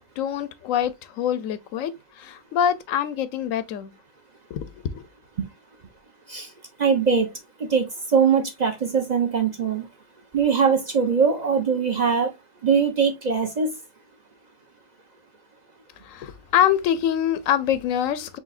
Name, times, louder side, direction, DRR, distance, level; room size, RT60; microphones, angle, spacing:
voice 1, 0.2-1.9 2.2-3.9 4.5-5.1 16.0-18.4, left 9 dB, 90° left, 1.0 m, -25 dB
voice 2, 6.8-7.3 7.6-9.9 10.3-12.3 12.6-13.8, right 6 dB, 45° right, 0.6 m, -21 dB
4.8 x 3.4 x 2.3 m
omnidirectional pair, 1.3 m